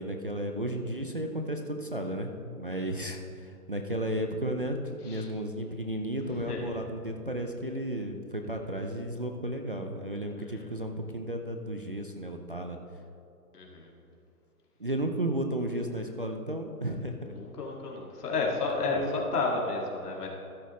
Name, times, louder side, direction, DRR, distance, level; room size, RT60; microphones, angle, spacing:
voice 1, 0.0-12.8 14.8-17.3 18.8-19.2, right 1 dB, 40° right, 3 dB, 0.4 m, -33 dB
voice 2, 6.3-6.8 10.3-10.7 13.5-13.9 17.3-20.3, left 3 dB, 75° left, -1 dB, 2.2 m, -32 dB
13.5 x 8.0 x 3.1 m, 2.6 s
hypercardioid pair, 160°, 47 cm